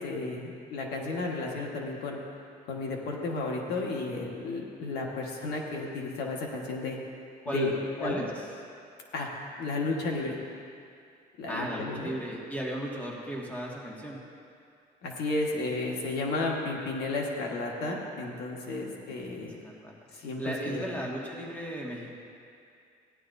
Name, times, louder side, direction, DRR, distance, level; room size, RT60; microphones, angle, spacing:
voice 1, 0.0-2.2 2.7-7.0 7.5-7.7 8.0-8.2 9.1-9.3 9.6-10.4 11.4-12.1 15.0-19.6 20.1-20.8, left 3 dB, 75° left, -1 dB, 1.5 m, -33 dB
voice 2, 7.4-8.5 11.5-14.2 18.9-22.1, right 1 dB, 10° left, -3 dB, 2.0 m, -36 dB
16.5 x 11.0 x 2.7 m, 2.4 s
cardioid pair, 110°, 17 cm